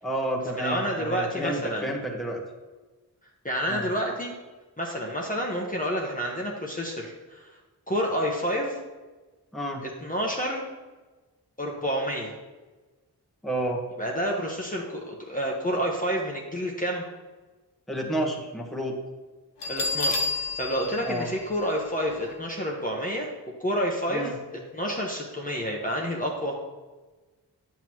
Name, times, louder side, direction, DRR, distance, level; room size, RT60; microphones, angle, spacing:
voice 1, 0.0-2.4 3.7-3.9 9.5-9.8 13.4-13.8 17.9-19.0 21.0-21.3 24.1-24.4, right 1 dB, ahead, -1 dB, 1.3 m, -30 dB
voice 2, 0.6-1.9 3.4-4.3 4.8-7.5 7.9-8.8 9.8-10.6 11.6-12.3 14.0-17.0 19.7-23.3 23.6-26.6, equal, 20° left, -2 dB, 1.2 m, -29 dB
Bell, 19.6-22.3, left 3 dB, 80° left, 1.1 m, -31 dB
9.2 x 7.0 x 3.1 m, 1.2 s
wide cardioid pair, 65°, 40 cm